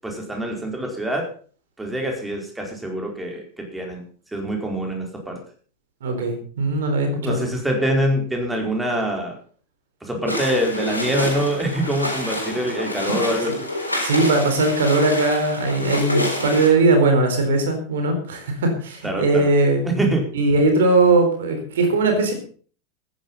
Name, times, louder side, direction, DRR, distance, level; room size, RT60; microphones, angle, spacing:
voice 1, 0.0-1.3 1.8-4.0 4.3-5.4 7.2-9.3 10.0-13.5 19.0-19.5 19.8-20.3, right 1 dB, 10° right, 1 dB, 4.8 m, -24 dB
voice 2, 6.0-7.5 14.0-19.8 20.3-22.3, right 3 dB, 65° right, 6 dB, 4.1 m, -19 dB
sound 1, 10.3-16.7, left 1 dB, 90° left, 4.4 m, -27 dB
14.0 x 10.5 x 5.6 m, 0.43 s
figure-of-eight pair, 80°, 0 cm